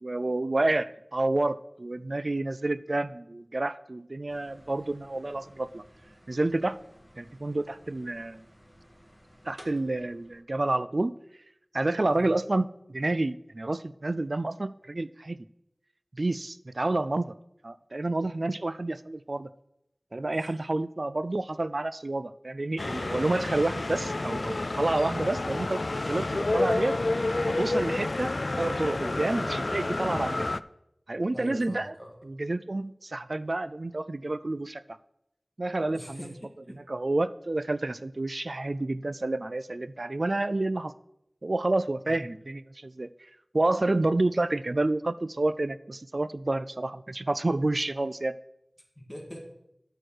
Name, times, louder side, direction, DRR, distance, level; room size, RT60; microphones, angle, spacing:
voice 1, 0.0-5.8 6.3-6.8 7.2-8.4 9.5-11.1 11.7-15.4 16.2-17.3 17.6-19.5 20.1-25.8 26.1-27.0 27.5-30.5 31.1-31.9 32.2-35.0 35.6-36.3 36.7-40.9 41.4-48.3, right 2 dB, 60° right, 14 dB, 0.3 m, -29 dB
sound 1, 4.3-10.4, equal, 5° right, 1.7 m, -55 dB
sound 2, 22.8-30.6, left 2 dB, 65° left, 0.3 m, -29 dB
voice 2, 31.3-32.1 35.9-36.8 42.1-42.2 49.0-49.5, equal, 10° left, -1 dB, 2.3 m, -43 dB
12.5 x 4.5 x 6.4 m, 0.81 s
wide cardioid pair, 45°, 0 cm